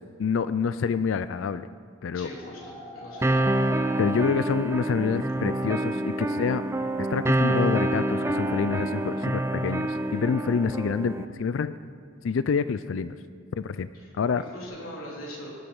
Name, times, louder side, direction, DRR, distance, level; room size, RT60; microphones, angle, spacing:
voice 1, 0.2-1.7 2.0-2.3 4.0-6.6 7.0-11.8 12.2-13.2 13.6-13.9 14.2-14.4, left 5 dB, 70° left, 14 dB, 0.4 m, -27 dB
voice 2, 2.1-3.4 13.9-14.1 14.4-15.5, equal, 90° left, -3 dB, 3.5 m, -41 dB
sound 1, 2.1-11.9, equal, 20° left, 4.7 m, -47 dB
sound 2, 3.2-11.3, right 1 dB, 15° right, 0.4 m, -27 dB
18.5 x 12.0 x 5.4 m, 2.2 s
head